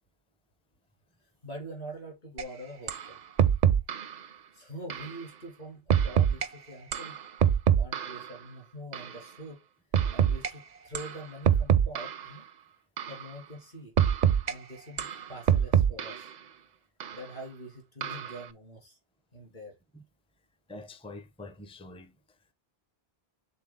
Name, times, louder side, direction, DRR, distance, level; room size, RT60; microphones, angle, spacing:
voice 1, 1.4-3.2 4.5-7.2 7.7-9.6 10.1-12.4 13.1-13.9 14.5-16.3 17.1-19.0 19.3-19.7, right 1 dB, 60° left, 3.0 m, -44 dB
sound 1, 2.4-2.5 2.9-3.1 3.4-4.1 4.9-5.1 5.9-6.5 6.9-8.3 8.9-9.1 9.9-10.5 11.0-11.2 11.5-12.3 13.0-13.2 14.0-14.5 15.0-16.3 17.0-17.2 18.0-18.4, right 9 dB, 55° right, 0.6 m, -25 dB
voice 2, 20.7-22.1, left 2 dB, 5° left, 0.5 m, -45 dB
7.5 x 3.8 x 3.6 m
omnidirectional pair, 1.0 m